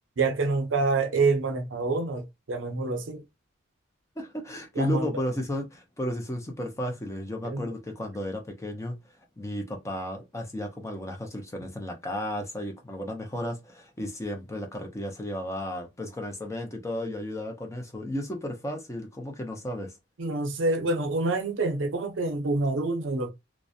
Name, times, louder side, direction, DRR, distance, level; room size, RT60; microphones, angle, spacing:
voice 1, 0.2-3.2 4.8-5.1 7.4-7.7 20.2-23.3, right 3 dB, 70° right, 0.6 m, -27 dB
voice 2, 4.2-20.0, left 1 dB, 15° left, 0.4 m, -34 dB
2.4 x 2.0 x 2.6 m
head